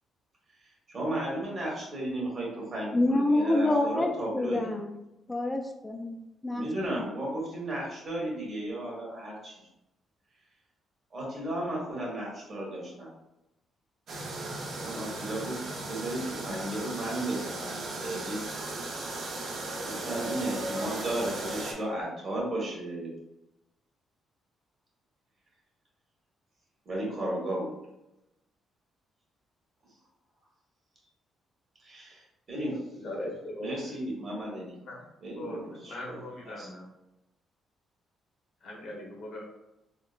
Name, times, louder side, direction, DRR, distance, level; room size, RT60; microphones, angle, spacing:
voice 1, 0.9-4.7 6.5-9.6 11.1-13.1 14.8-15.6 15.9-18.4 19.8-23.1 26.8-27.7 31.8-32.8 33.6-34.7 35.2-36.7, right 1 dB, 45° right, -3 dB, 1.3 m, -34 dB
voice 2, 2.9-4.9 5.3-6.6 6.9-7.0, left 2 dB, 15° left, 2 dB, 0.3 m, -27 dB
sound 1, 14.1-21.7, right 2 dB, 60° right, 0.6 m, -36 dB
voice 3, 33.0-33.7 34.9-35.0 35.4-36.9 38.6-39.4, left 1 dB, 65° left, -1 dB, 0.9 m, -39 dB
3.6 x 2.1 x 2.4 m, 0.92 s
cardioid pair, 90°, 0 cm